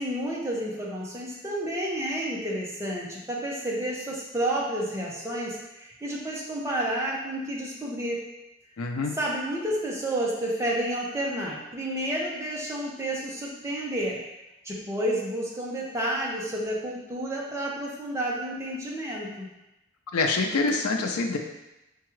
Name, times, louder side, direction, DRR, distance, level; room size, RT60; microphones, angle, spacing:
voice 1, 0.0-8.2 9.1-14.2 14.6-19.5, right 1 dB, 15° right, -4 dB, 0.6 m, -30 dB
voice 2, 8.8-9.2 20.1-21.4, left 3 dB, 90° left, 3 dB, 0.4 m, -25 dB
4.6 x 2.3 x 3.0 m, 0.94 s
head